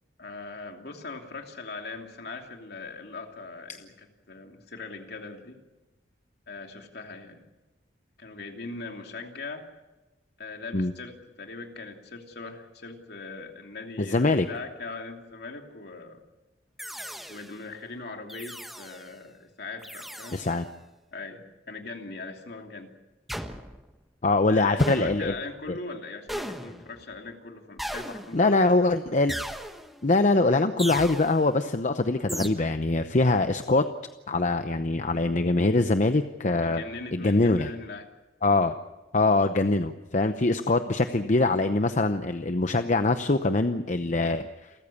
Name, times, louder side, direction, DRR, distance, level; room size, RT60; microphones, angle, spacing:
voice 1, 0.2-5.6 6.5-7.4 8.2-9.7 10.4-16.2 17.3-20.5 21.1-23.0 24.5-28.6 36.6-38.1, left 3 dB, 65° left, 3 dB, 2.9 m, -40 dB
voice 2, 14.0-14.5 20.3-20.6 24.2-25.3 28.3-29.3 30.0-33.8 34.3-36.8 37.1-37.7 38.4-38.7 39.1-44.5, left 2 dB, 45° left, 9 dB, 0.8 m, -23 dB
sound 1, 16.8-17.6 18.3-19.1 19.8-20.6 23.3-24.0 24.8-25.5 26.3-27.0 27.8-28.6 29.3-30.1 30.8-31.5 32.3-32.5, equal, ahead, 1.3 m, -37 dB
29.0 x 14.0 x 8.5 m, 1.1 s
head